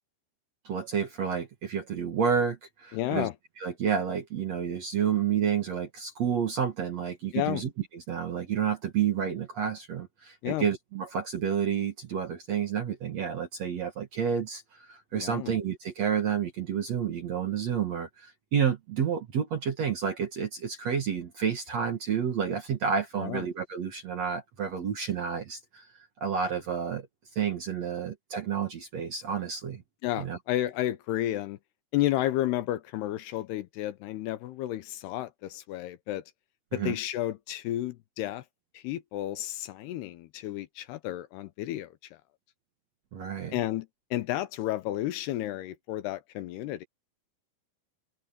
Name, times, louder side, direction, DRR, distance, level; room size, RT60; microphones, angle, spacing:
voice 1, 0.6-3.3 3.6-25.9 26.2-27.1 27.4-29.8 30.2-30.4 36.7-37.0 43.1-43.5, right 7 dB, 55° right, 2.1 m, -30 dB
voice 2, 2.9-3.3 7.3-7.6 10.4-10.7 15.1-15.5 23.2-23.4 30.0-31.6 31.9-36.2 36.7-38.4 38.7-41.9 43.5-46.9, left 14 dB, 75° left, 2.7 m, -32 dB
open air
omnidirectional pair, 5.0 m